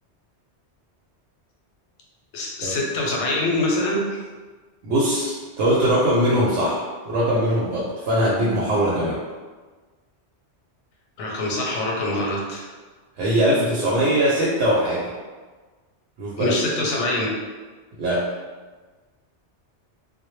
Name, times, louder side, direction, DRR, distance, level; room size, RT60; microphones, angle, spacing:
voice 1, 2.3-4.2 11.2-12.7 16.4-17.3, left 2 dB, 90° left, -2 dB, 0.9 m, -24 dB
voice 2, 4.8-9.2 13.2-15.1 16.2-16.6 18.0-18.2, equal, 80° right, -7 dB, 0.9 m, -21 dB
2.1 x 2.0 x 3.0 m, 1.4 s
omnidirectional pair, 1.2 m